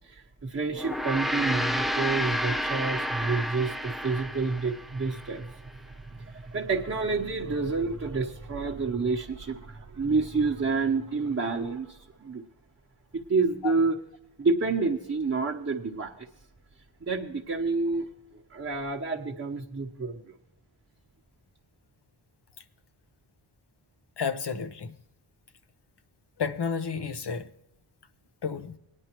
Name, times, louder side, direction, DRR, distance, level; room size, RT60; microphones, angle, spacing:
voice 1, 0.0-12.4 13.1-14.0 14.4-16.3 17.0-18.1 18.3-20.4, right 4 dB, 30° right, 1.0 m, -29 dB
Gong, 0.7-5.3, equal, ahead, 0.4 m, -30 dB
voice 2, 24.2-24.9 26.4-27.5 28.4-28.8, left 6 dB, 55° left, 0.9 m, -31 dB
18.5 x 11.0 x 3.0 m
cardioid pair, 60°, 50 cm